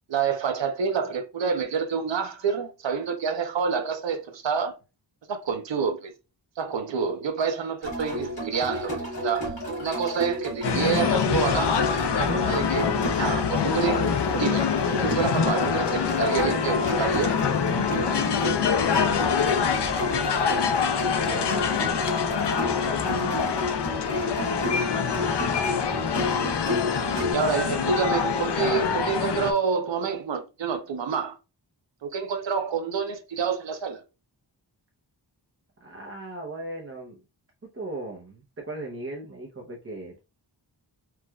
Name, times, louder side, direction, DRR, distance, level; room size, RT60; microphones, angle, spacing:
voice 1, 0.1-4.8 5.3-6.1 6.6-11.8 12.2-12.9 13.2-14.1 14.4-17.4 27.3-31.4 32.0-34.0, right 6 dB, 90° right, 0.7 m, -28 dB
sound 1, 7.8-27.3, equal, 85° left, 2.0 m, -32 dB
sound 2, 10.6-29.5, left 6 dB, 70° left, 0.6 m, -25 dB
voice 2, 18.6-19.2 19.7-23.4 24.3-25.5 35.8-37.2 37.7-40.2, right 2 dB, 30° right, 0.7 m, -39 dB
4.5 x 2.4 x 2.3 m
wide cardioid pair, 100°, 43 cm